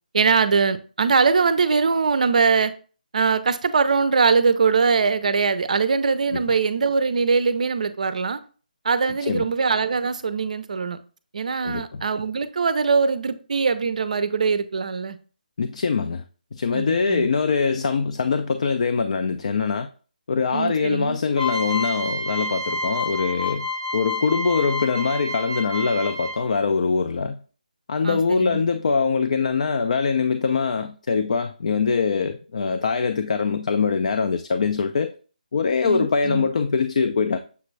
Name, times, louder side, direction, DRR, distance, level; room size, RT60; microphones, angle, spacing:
voice 1, 0.1-2.7 3.1-8.4 8.8-11.0 11.3-15.2 16.7-17.3 20.5-21.2 28.0-28.6 35.8-36.5, right 5 dB, 55° right, 0.4 m, -22 dB
voice 2, 11.6-12.0 15.6-16.2 16.5-19.9 20.3-23.7 23.9-27.4 27.9-35.1 35.5-37.4, left 5 dB, 50° left, 0.4 m, -23 dB
sound 1, 21.3-26.6, left 1 dB, 10° left, 0.6 m, -29 dB
6.7 x 2.5 x 3.1 m
figure-of-eight pair, 160°, 5 cm